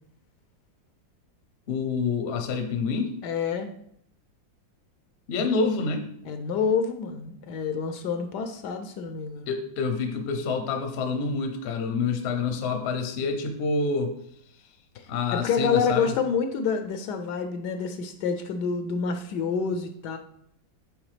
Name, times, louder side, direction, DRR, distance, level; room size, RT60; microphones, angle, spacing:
voice 1, 1.7-3.1 5.3-6.1 9.5-14.1 15.1-16.1, left 4 dB, 50° left, 6 dB, 0.8 m, -27 dB
voice 2, 3.2-3.7 5.4-5.5 6.2-9.5 14.9-20.2, left 5 dB, 70° left, 7 dB, 1.1 m, -28 dB
8.1 x 3.4 x 5.0 m, 0.69 s
omnidirectional pair, 2.0 m